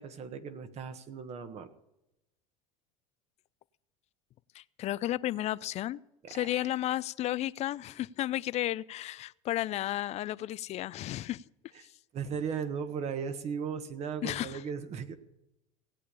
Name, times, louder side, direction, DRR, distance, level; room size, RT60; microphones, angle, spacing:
voice 1, 0.0-1.7 6.3-6.5 11.7-11.9 12.1-15.1, right 6 dB, 45° right, 1.5 m, -37 dB
voice 2, 4.5-6.0 6.3-11.4 11.8-11.9 14.2-14.6, left 14 dB, 45° left, 0.5 m, -33 dB
17.5 x 8.5 x 6.9 m
supercardioid pair, 95°, 16 cm